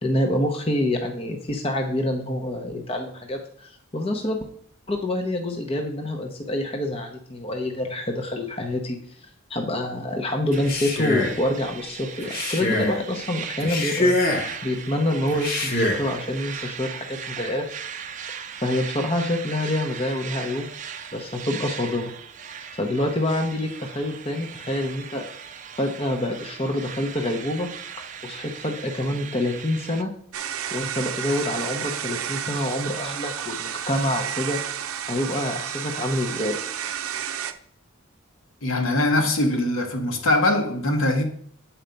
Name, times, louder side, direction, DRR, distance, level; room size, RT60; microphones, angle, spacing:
voice 1, 0.0-4.4 4.9-9.2 9.5-17.7 18.6-20.7 21.1-22.1 22.8-25.3 25.8-27.7 28.2-30.1 30.7-34.6 35.0-36.6, left 1 dB, 25° left, 0.7 m, -27 dB
Male speech man speaking, 10.5-11.4 12.2-13.0 13.6-14.6 15.3-16.1, left 1 dB, 40° left, 1.1 m, -24 dB
sound 1, 10.5-30.0, right 7 dB, 35° right, 0.5 m, -38 dB
sound 2, 30.3-37.5, right 9 dB, 80° right, 0.6 m, -31 dB
voice 2, 38.6-41.2, left 1 dB, 70° left, 1.3 m, -22 dB
7.9 x 4.4 x 5.2 m
head